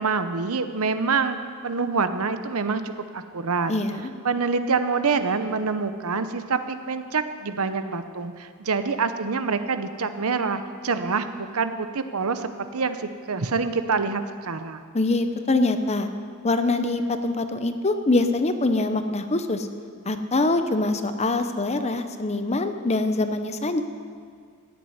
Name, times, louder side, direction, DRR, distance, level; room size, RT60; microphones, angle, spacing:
voice 1, 0.0-1.4 1.6-3.7 4.2-14.8, right 4 dB, 80° right, 10 dB, 0.9 m, -26 dB
voice 2, 3.7-4.1 14.9-16.1 16.4-19.7 20.1-23.8, left 2 dB, 30° left, 8 dB, 0.9 m, -24 dB
16.0 x 7.7 x 9.7 m, 2.1 s
head